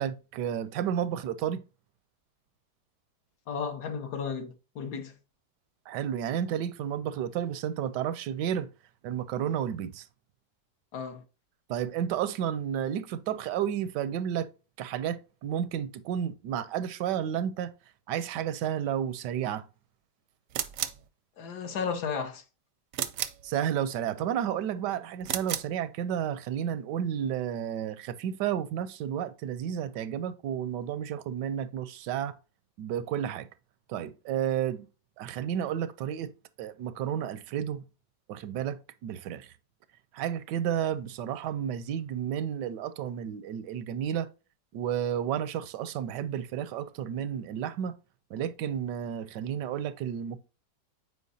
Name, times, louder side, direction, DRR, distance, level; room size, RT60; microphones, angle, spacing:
voice 1, 0.0-1.6 5.9-8.7 9.0-10.1 11.7-14.5 14.8-17.7 18.1-19.6 23.4-32.4 32.8-33.5 33.9-34.9 35.2-36.3 36.6-37.8 38.3-39.5 40.1-44.3 44.7-47.9 48.3-50.4, right 9 dB, 85° right, 1.2 m, -31 dB
voice 2, 3.5-5.1 10.9-11.2 21.4-22.4, left 6 dB, 70° left, 1.5 m, -34 dB
sound 1, 20.5-21.1 22.9-23.5 25.2-25.8, right 10 dB, 65° right, 0.8 m, -33 dB
8.3 x 4.6 x 2.7 m
omnidirectional pair, 1.9 m